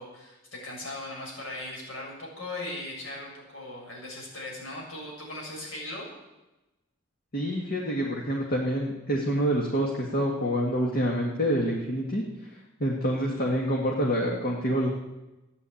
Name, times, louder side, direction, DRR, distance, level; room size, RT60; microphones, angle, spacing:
voice 1, 0.0-6.1, left 1 dB, 80° left, -2 dB, 6.9 m, -38 dB
voice 2, 7.3-12.2 12.8-14.9, equal, 50° left, -1 dB, 2.0 m, -27 dB
14.5 x 9.8 x 8.6 m, 1.0 s
head